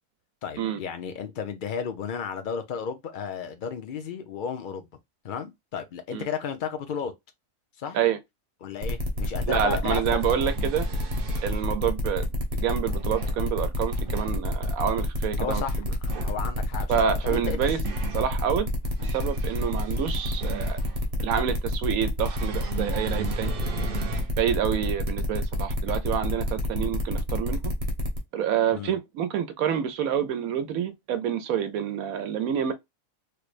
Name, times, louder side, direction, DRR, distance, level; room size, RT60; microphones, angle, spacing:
voice 1, 0.4-4.9 5.2-7.1 7.8-8.0 8.6-10.6 15.4-17.8 19.0-19.1 25.2-25.3 28.7-28.9, left 7 dB, 50° left, 0.6 m, -34 dB
sound 1, 8.8-28.2, left 1 dB, 30° right, 0.8 m, -29 dB
sound 2, 9.0-9.1 10.0-11.6 12.7-13.4 13.9-14.4 15.9-16.4 17.4-18.3 18.8-21.0 22.2-24.4 24.9-25.0 26.5-26.6, right 6 dB, 55° right, 0.6 m, -39 dB
voice 2, 9.5-10.8 11.4-12.2 12.5-15.9 16.9-17.8 18.1-18.7 19.0-20.8 21.2-23.5 24.4-27.7 28.3-32.7, right 9 dB, 85° right, 1.1 m, -28 dB
3.3 x 3.1 x 2.4 m
omnidirectional pair, 1.4 m